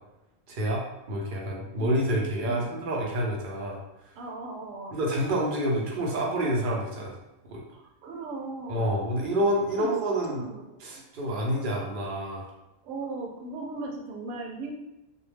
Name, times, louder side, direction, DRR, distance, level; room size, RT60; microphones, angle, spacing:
voice 1, 0.5-3.8 4.9-7.2 7.5-7.6 8.7-10.5 10.8-12.5, right 1 dB, 50° right, -2 dB, 0.7 m, -28 dB
voice 2, 2.5-2.8 4.2-4.9 7.7-9.0 9.8-10.7 10.9-11.0 12.8-14.7, right 3 dB, 85° right, 1 dB, 1.0 m, -38 dB
2.3 x 2.2 x 3.2 m, 0.94 s
omnidirectional pair, 1.3 m